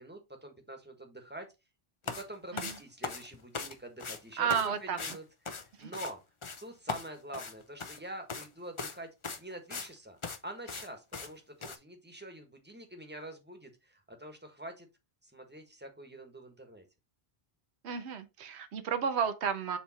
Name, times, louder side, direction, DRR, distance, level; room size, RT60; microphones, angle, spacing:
voice 1, 0.0-1.5 2.0-6.2 6.6-9.1 9.4-10.2 10.4-14.9 15.2-16.8, right 1 dB, 10° right, 1.3 m, -46 dB
sound 1, 2.0-2.2 2.6-3.7 4.0-4.2 4.5-4.7 5.0-5.2 5.5-6.1 6.4-6.6 6.9-8.0 8.3-8.5 8.8-9.0 9.2-9.9 10.2-10.4 10.7-10.9 11.1-11.3 11.6-11.8, left 4 dB, 35° left, 0.6 m, -39 dB
voice 2, 4.4-5.0 5.8-5.9 17.8-19.8, right 7 dB, 75° right, 1.1 m, -32 dB
7.1 x 3.4 x 4.1 m
omnidirectional pair, 1.1 m